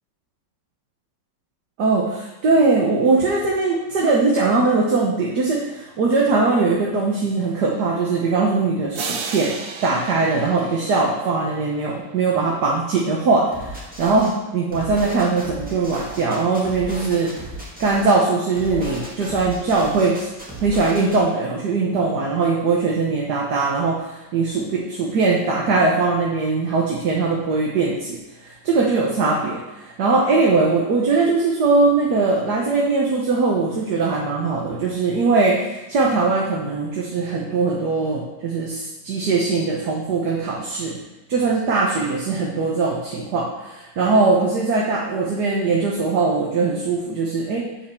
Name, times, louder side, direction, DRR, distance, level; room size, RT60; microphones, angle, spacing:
voice 1, 1.8-9.5 9.8-17.5 17.8-20.3 20.6-41.0 41.3-47.6, right 3 dB, 65° right, -2 dB, 1.6 m, -21 dB
sound 1, 8.9-11.8, right 5 dB, 90° right, 1.6 m, -33 dB
sound 2, 13.5-14.3 14.7-18.2 18.5-21.2, equal, 5° right, 2.0 m, -35 dB
7.4 x 5.6 x 7.0 m, 1.0 s
omnidirectional pair, 1.9 m